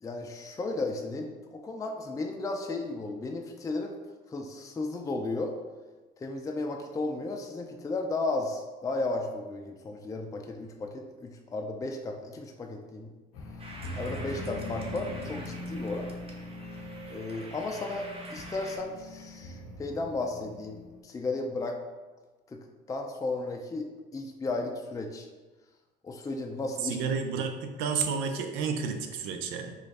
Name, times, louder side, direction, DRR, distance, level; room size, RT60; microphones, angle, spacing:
voice 1, 0.0-4.0 4.3-5.5 6.2-13.1 13.9-16.1 17.1-21.8 22.5-22.6 22.9-25.3 26.0-27.0 27.3-27.4, left 2 dB, 15° left, 2 dB, 0.4 m, -34 dB
sound 1, 13.3-21.0, left 1 dB, 90° left, 0.7 m, -41 dB
sound 2, 13.6-18.8, right 2 dB, 30° right, 0.8 m, -46 dB
voice 2, 26.8-29.8, right 5 dB, 85° right, 5 dB, 0.5 m, -31 dB
3.1 x 2.4 x 4.1 m, 1.2 s
supercardioid pair, 75°, 20 cm